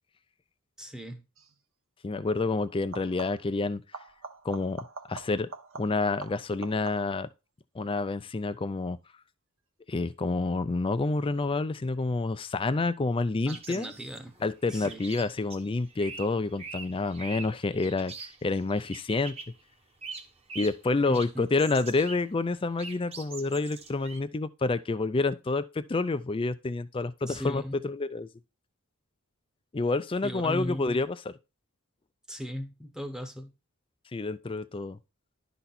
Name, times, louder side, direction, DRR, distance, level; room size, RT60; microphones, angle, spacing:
voice 1, 0.8-1.2 13.5-14.3 14.7-15.0 21.0-21.5 27.3-27.8 30.2-31.0 32.3-33.5, equal, 5° right, 1.0 m, -38 dB
sound 1, 1.3-1.6 2.8-3.6 3.9-7.3 12.7-13.3 14.8-14.9, right 4 dB, 60° right, 1.0 m, -45 dB
voice 2, 2.0-3.8 4.4-5.5 5.8-7.3 7.8-9.0 9.9-13.9 14.4-19.3 20.5-28.3 29.7-31.3 34.1-35.0, left 3 dB, 25° left, 0.4 m, -28 dB
sound 2, 13.5-19.6 20.0-20.9 21.1-22.3 22.5-24.2, right 4 dB, 25° right, 1.1 m, -44 dB
11.0 x 4.1 x 4.2 m
head